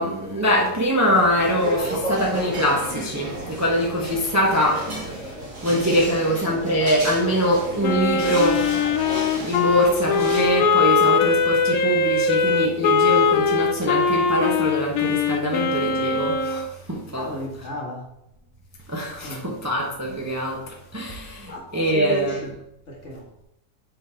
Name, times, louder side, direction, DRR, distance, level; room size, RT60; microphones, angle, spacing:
voice 1, 0.0-5.3 5.6-8.8 9.3-17.3 18.9-22.5, equal, 15° right, -2 dB, 0.8 m, -23 dB
sound 1, 1.0-10.6, right 1 dB, 50° right, 2.0 m, -33 dB
Wind instrument woodwind instrument, 7.8-16.7, left 4 dB, 70° left, 1.0 m, -21 dB
voice 2, 17.2-18.1 19.2-19.6 21.4-22.4 22.9-23.3, right 1 dB, 45° left, -2 dB, 1.8 m, -33 dB
7.1 x 3.9 x 4.5 m, 0.80 s
omnidirectional pair, 1.7 m